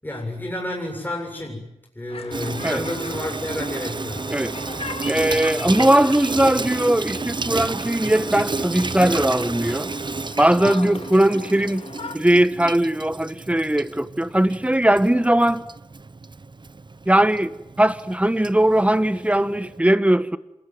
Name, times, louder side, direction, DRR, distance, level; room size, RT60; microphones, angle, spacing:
voice 1, 0.0-4.3, left 1 dB, 15° left, 7.3 m, -30 dB
sound 1, 2.1-12.2, left 3 dB, 60° left, 2.6 m, -39 dB
Water tap faucet / Sink (filling or washing), 2.3-19.8, right 3 dB, 40° right, 0.9 m, -32 dB
voice 2, 5.1-9.9 10.4-11.8 12.1-15.6 17.1-17.5 17.8-20.4, right 1 dB, 10° right, 1.3 m, -19 dB
26.5 x 21.0 x 9.5 m
wide cardioid pair, 60°, 12 cm